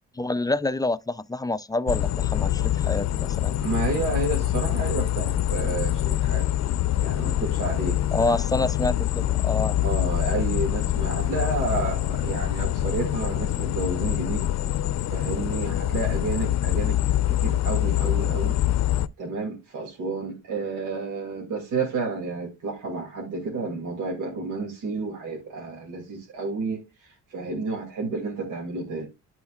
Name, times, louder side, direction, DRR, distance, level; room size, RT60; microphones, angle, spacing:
voice 1, 0.2-3.6 8.1-9.8, left 2 dB, 15° left, 0.4 m, -27 dB
sound 1, 1.9-19.1, left 12 dB, 60° left, 0.6 m, -25 dB
voice 2, 3.6-6.5 7.0-8.4 9.8-14.5 15.1-17.0 17.3-18.6 19.2-29.1, right 3 dB, 90° right, 2.6 m, -31 dB
13.0 x 4.4 x 2.4 m
cardioid pair, 90°, 30 cm